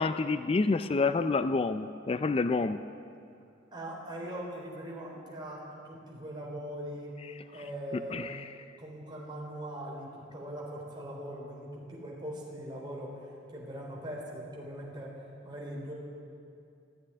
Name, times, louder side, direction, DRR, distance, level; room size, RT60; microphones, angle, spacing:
voice 1, 0.0-2.8 8.1-8.3, left 3 dB, 30° left, 11 dB, 0.4 m, -28 dB
voice 2, 3.7-7.1 7.5-8.3 8.8-15.9, right 1 dB, 25° right, -3 dB, 3.7 m, -41 dB
14.5 x 9.1 x 10.0 m, 2.5 s
head